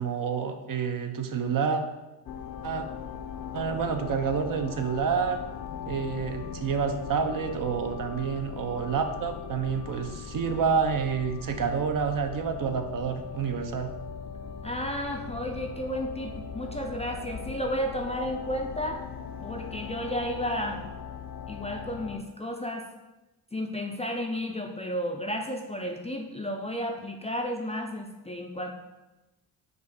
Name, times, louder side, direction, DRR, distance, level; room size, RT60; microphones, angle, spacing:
voice 1, 0.0-1.8 2.6-2.9 3.5-5.4 5.8-13.9, right 6 dB, 45° right, 6 dB, 0.6 m, -28 dB
sound 1, 2.3-22.2, left 6 dB, 55° left, 0.6 m, -39 dB
voice 2, 14.6-19.0 19.4-20.8 21.5-22.8 23.5-28.7, equal, 15° left, 2 dB, 0.4 m, -32 dB
4.7 x 2.5 x 4.1 m, 1.0 s
supercardioid pair, 60°, 46 cm